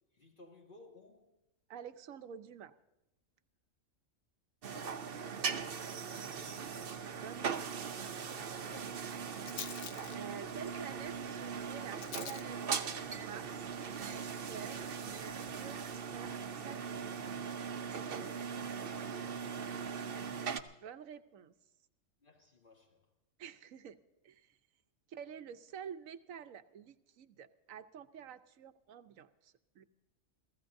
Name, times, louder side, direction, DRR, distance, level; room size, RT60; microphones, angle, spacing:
voice 1, 0.1-1.3 4.7-6.2 8.6-9.1 18.8-19.4 22.2-23.0, left 2 dB, 40° left, 2.8 m, -59 dB
voice 2, 1.7-2.7 7.2-8.0 10.1-15.8 16.1-16.4 16.6-17.2 20.7-21.5 23.4-24.0 24.2-24.5 25.1-29.8, right 8 dB, 90° right, 1.2 m, -49 dB
sound 1, 4.6-20.6, right 6 dB, 50° right, 0.9 m, -40 dB
Rattle, 6.4-16.4, left 8 dB, 75° left, 1.1 m, -53 dB
28.5 x 16.0 x 2.6 m
omnidirectional pair, 1.3 m